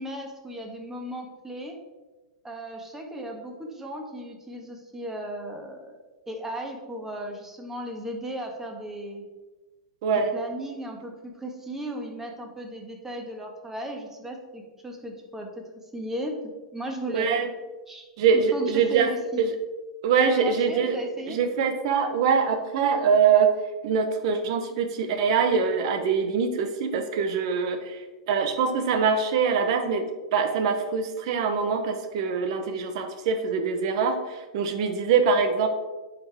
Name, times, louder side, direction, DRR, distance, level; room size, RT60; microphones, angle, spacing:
voice 1, 0.0-1.8 2.4-6.0 6.3-9.2 10.1-15.6 15.9-16.3 16.7-17.3 17.9-18.1 18.5-19.4 20.3-21.4, right 1 dB, 10° right, 1 dB, 1.6 m, -36 dB
voice 2, 10.0-10.3 17.1-17.5 18.2-19.1 19.4-19.5 20.0-21.0 21.3-23.5 23.8-28.0 28.3-35.7, right 6 dB, 60° right, 8 dB, 1.1 m, -23 dB
9.7 x 5.0 x 3.6 m, 1.2 s
hypercardioid pair, 105°, 3 cm